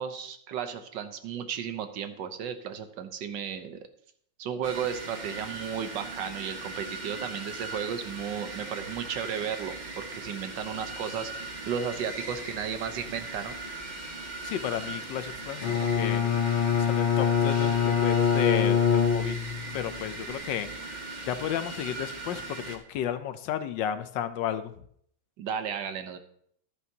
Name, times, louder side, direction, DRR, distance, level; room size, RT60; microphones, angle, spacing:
voice 1, 0.0-3.8 4.4-13.6 25.4-26.2, right 7 dB, 65° right, 9 dB, 1.5 m, -34 dB
sound 1, 4.6-22.8, right 2 dB, 30° right, 0.9 m, -39 dB
voice 2, 14.4-16.3 16.8-19.4 19.7-20.9 21.3-24.7, left 10 dB, 70° left, 11 dB, 1.3 m, -33 dB
Bowed string instrument, 15.6-19.8, left 7 dB, 85° left, 1.9 m, -24 dB
14.0 x 11.0 x 2.8 m, 0.66 s
omnidirectional pair, 2.2 m